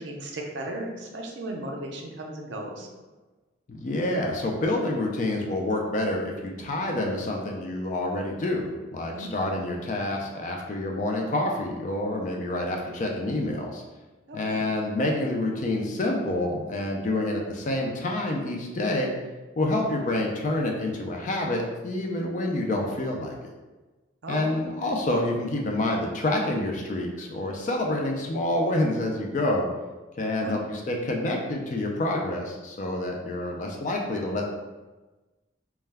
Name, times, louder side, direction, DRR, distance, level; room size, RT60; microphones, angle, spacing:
voice 1, 0.0-2.9 9.1-9.3 14.3-14.7 24.2-24.5 30.4-30.5, right 1 dB, 65° right, 0 dB, 0.4 m, -35 dB
voice 2, 3.7-13.8 14.3-19.1 19.6-23.4 24.3-29.7 30.2-34.5, left 1 dB, 40° left, 0 dB, 0.3 m, -28 dB
2.2 x 2.1 x 3.3 m, 1.2 s
head